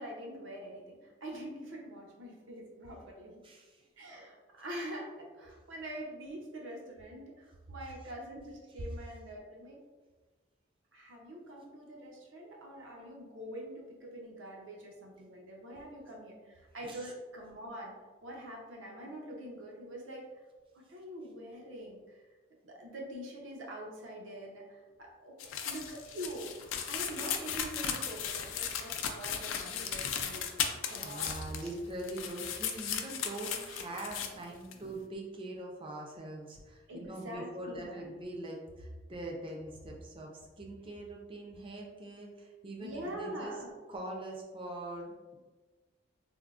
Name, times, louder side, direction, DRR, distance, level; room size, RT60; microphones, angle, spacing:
voice 1, 0.0-3.4 4.0-9.8 10.9-17.9 18.2-20.2 20.7-22.2 22.6-25.3 25.6-31.3 36.9-38.1 42.8-43.7, right 1 dB, 80° right, -2 dB, 0.7 m, -45 dB
voice 2, 3.4-3.9 16.8-17.1 30.5-30.7 31.0-43.5 43.9-45.4, right 1 dB, 25° right, -1 dB, 0.4 m, -43 dB
sound 1, 25.4-31.8 32.0-34.3 34.7-34.8, left 8 dB, 80° left, 0.3 m, -36 dB
3.5 x 2.0 x 2.3 m, 1.3 s
head